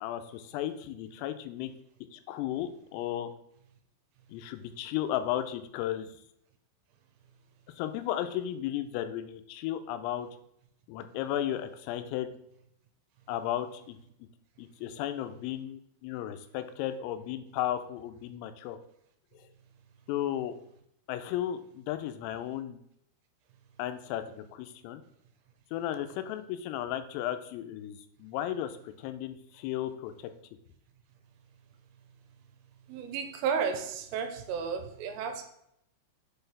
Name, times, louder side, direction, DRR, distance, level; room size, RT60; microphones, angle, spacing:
voice 1, 0.0-1.7 2.1-3.3 4.3-6.2 7.8-10.3 10.9-12.3 13.3-14.0 14.6-18.8 19.3-19.5 20.1-20.5 21.1-22.8 23.8-25.0 25.7-30.3, left 11 dB, 90° left, 9 dB, 3.2 m, -34 dB
voice 2, 32.9-35.4, right 6 dB, 90° right, 6 dB, 3.3 m, -32 dB
7.3 x 4.5 x 3.3 m, 0.74 s
omnidirectional pair, 5.8 m